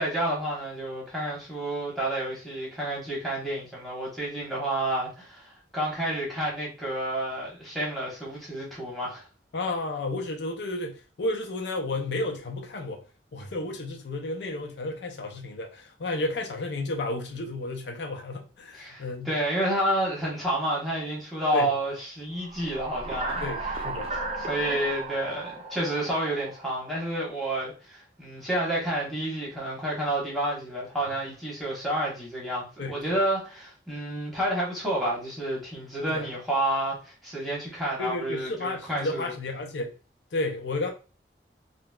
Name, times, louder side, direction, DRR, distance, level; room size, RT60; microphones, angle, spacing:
voice 1, 0.0-9.2 18.7-23.7 24.4-39.3, right 1 dB, ahead, 1.1 m, -30 dB
voice 2, 9.5-13.0 13.3-19.3 21.5-21.8 23.4-24.1 32.8-33.1 36.1-36.3 38.0-39.9 40.3-40.9, left 2 dB, 75° left, 0.5 m, -32 dB
sound 1, 22.4-27.1, right 2 dB, 35° right, 0.5 m, -35 dB
3.9 x 2.0 x 2.2 m
head